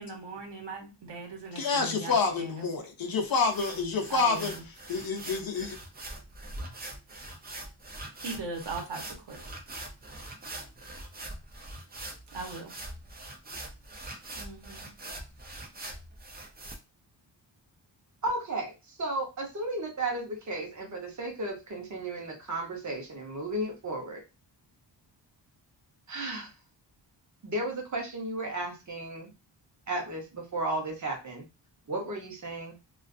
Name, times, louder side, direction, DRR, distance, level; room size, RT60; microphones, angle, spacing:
voice 1, 0.0-2.7 4.1-4.6 8.2-9.4 12.3-12.7 14.3-14.9, right 3 dB, 65° right, 1.0 m, -39 dB
voice 2, 1.6-4.5 4.9-5.8, left 4 dB, 50° left, 0.6 m, -28 dB
sound 1, 3.3-16.8, right 1 dB, 25° right, 0.4 m, -43 dB
voice 3, 18.2-24.2 26.1-26.5 27.4-29.3 29.9-31.4 31.9-32.7, right 2 dB, 40° right, 0.8 m, -34 dB
2.4 x 2.4 x 2.4 m
wide cardioid pair, 160°, 46 cm